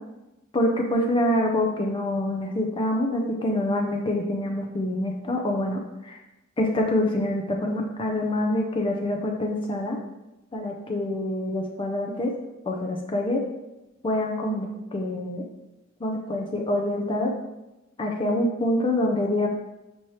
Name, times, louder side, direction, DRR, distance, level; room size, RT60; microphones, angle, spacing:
voice 1, 0.5-6.2 6.6-10.0 10.5-12.3 12.7-13.4 14.0-15.4 16.0-17.3 18.0-19.5, left 1 dB, 25° left, 1 dB, 0.5 m, -26 dB
6.1 x 2.8 x 3.1 m, 0.97 s
head